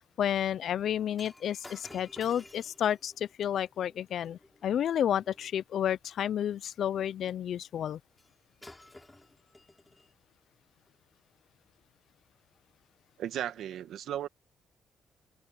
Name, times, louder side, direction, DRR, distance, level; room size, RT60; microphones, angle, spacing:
voice 1, 0.2-8.0, left 10 dB, 65° left, 0.6 m, -31 dB
Shatter, 1.2-5.5 8.2-8.3 8.6-10.1 10.9-11.0, left 2 dB, 15° left, 7.4 m, -54 dB
voice 2, 13.2-14.3, right 11 dB, 75° right, 1.7 m, -35 dB
open air
cardioid pair, 90°, 0 cm